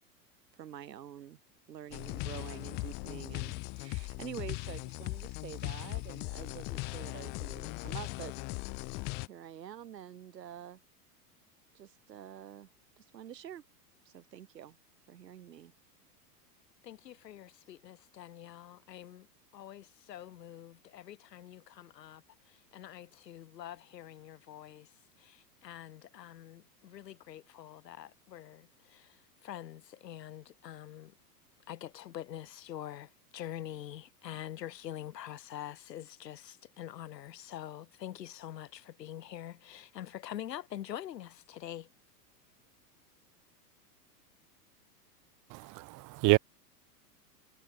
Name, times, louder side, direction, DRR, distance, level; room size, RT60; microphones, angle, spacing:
voice 1, 0.6-1.4 1.7-8.3 9.2-10.8 11.7-12.7 13.0-13.6 14.1-14.8 15.1-15.7, right 10 dB, 90° right, 3.5 m, -47 dB
sound 1, 1.9-9.3, left 27 dB, 25° left, 0.4 m, -39 dB
voice 2, 16.8-19.3 19.5-24.9 25.2-31.1 31.7-41.9, left 11 dB, 85° left, 2.1 m, -45 dB
voice 3, 45.5-46.4, right 23 dB, 40° right, 1.5 m, -27 dB
hypercardioid pair, 120°, 48 cm